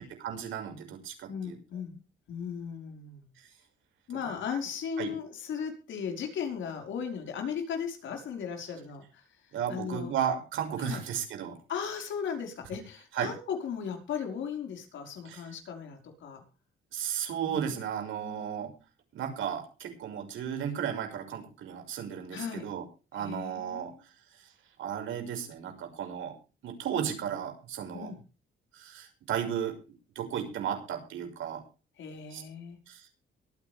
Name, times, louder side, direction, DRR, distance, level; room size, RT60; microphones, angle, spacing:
voice 1, 0.2-1.6 5.0-5.1 9.5-11.6 13.1-13.3 15.2-15.4 16.9-18.7 19.1-22.8 23.1-23.9 24.8-26.3 26.6-28.1 28.7-29.7 30.1-31.6 32.3-32.4 32.9-33.1, right 8 dB, 80° right, 5 dB, 6.1 m, -34 dB
voice 2, 1.3-2.0 2.3-3.3 4.1-10.1 10.8-11.0 11.7-16.4 17.4-18.8 22.3-22.7 23.1-24.0 27.9-28.2 32.0-32.8, left 7 dB, 75° left, 4 dB, 5.3 m, -37 dB
23.0 x 9.9 x 3.6 m, 0.34 s
cardioid pair, 90°, 20 cm